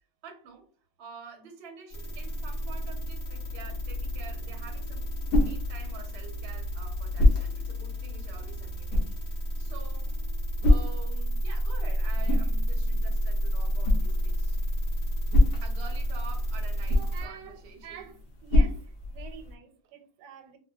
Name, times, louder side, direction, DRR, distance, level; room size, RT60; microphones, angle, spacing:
voice 1, 0.2-0.7 1.0-5.1 5.4-10.2 10.6-14.6 15.6-18.0, right 6 dB, 60° right, 0.7 m, -48 dB
sound 1, 1.9-17.2, equal, 55° left, 1.4 m, -31 dB
sound 2, 4.6-19.5, left 1 dB, 90° left, 1.3 m, -28 dB
voice 2, 16.9-18.1 18.4-20.6, right 8 dB, 85° right, 1.2 m, -46 dB
3.7 x 2.1 x 2.2 m
omnidirectional pair, 1.8 m